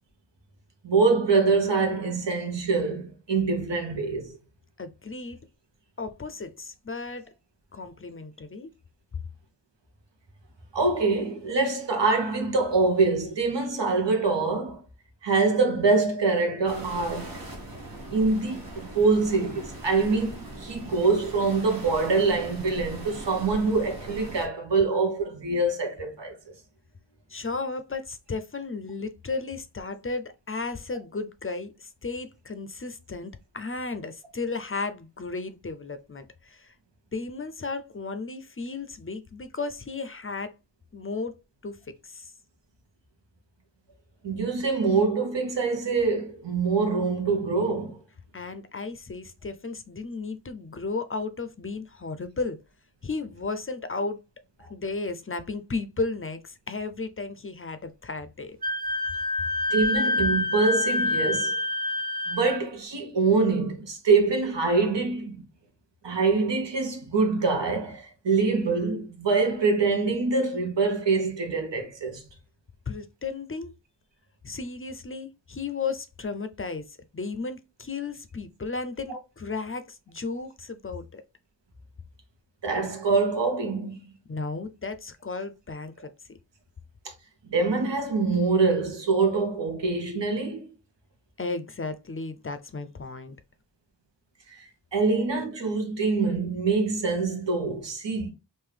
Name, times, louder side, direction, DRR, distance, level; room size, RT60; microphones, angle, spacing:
voice 1, 0.8-4.4 10.7-14.8 15.2-17.4 18.1-26.4 44.2-48.0 59.7-61.5 62.3-65.4 66.0-72.2 82.6-84.0 87.5-90.7 94.5-98.3, right 4 dB, 90° right, 1.1 m, -25 dB
voice 2, 4.8-5.4 6.0-7.3 7.7-8.7 27.3-36.7 37.1-40.5 40.9-41.4 41.6-41.8 42.0-42.3 48.3-52.6 53.0-54.2 54.7-58.6 72.9-73.7 74.4-81.2 84.3-86.1 91.4-93.3, left 3 dB, 35° left, 0.4 m, -34 dB
sound 1, 16.7-24.5, right 1 dB, 55° right, 1.3 m, -40 dB
Wind instrument woodwind instrument, 58.6-62.6, left 2 dB, 20° right, 1.2 m, -26 dB
3.6 x 2.6 x 3.3 m
wide cardioid pair, 70°, 42 cm